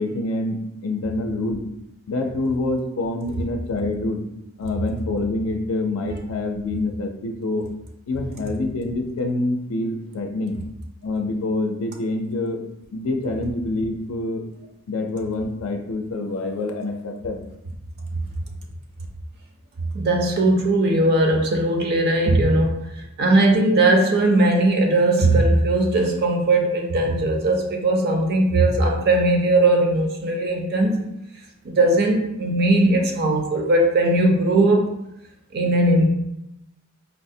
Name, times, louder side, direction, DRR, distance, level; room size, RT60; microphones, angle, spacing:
voice 1, 0.0-1.6 2.1-4.2 4.6-7.7 8.1-10.6 11.0-12.6 12.9-14.4 14.9-17.4, left 2 dB, 85° left, 3 dB, 0.4 m, -26 dB
voice 2, 19.9-22.8 23.2-31.0 31.6-34.9 35.5-36.1, right 2 dB, 50° right, 2 dB, 0.5 m, -19 dB
4.3 x 2.0 x 2.6 m, 0.83 s
head